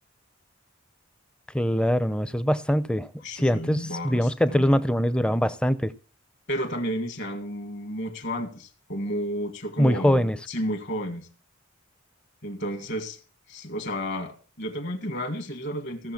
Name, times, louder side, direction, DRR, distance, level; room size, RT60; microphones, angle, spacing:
voice 1, 1.5-3.1 3.3-5.9 9.8-10.4, equal, 5° left, 0.5 m, -23 dB
voice 2, 3.2-4.8 6.5-11.3 12.4-13.2 13.5-16.1, equal, 55° left, 1.8 m, -32 dB
15.5 x 6.8 x 5.8 m
head